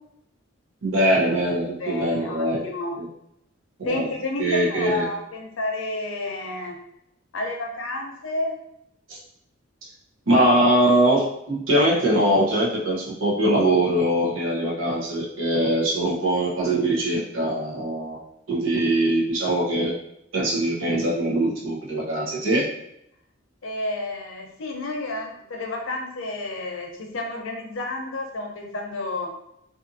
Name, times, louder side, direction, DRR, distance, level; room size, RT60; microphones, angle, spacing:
voice 1, 0.8-2.6 3.0-3.1 3.8-4.1 4.4-5.0 9.1-9.2 10.3-18.2 18.5-19.9 20.3-22.6, right 1 dB, 75° right, -4 dB, 0.8 m, -22 dB
voice 2, 1.8-3.0 3.8-6.8 7.3-8.5 23.6-29.3, left 2 dB, 75° left, 2 dB, 0.6 m, -30 dB
2.5 x 2.5 x 2.5 m, 0.78 s
head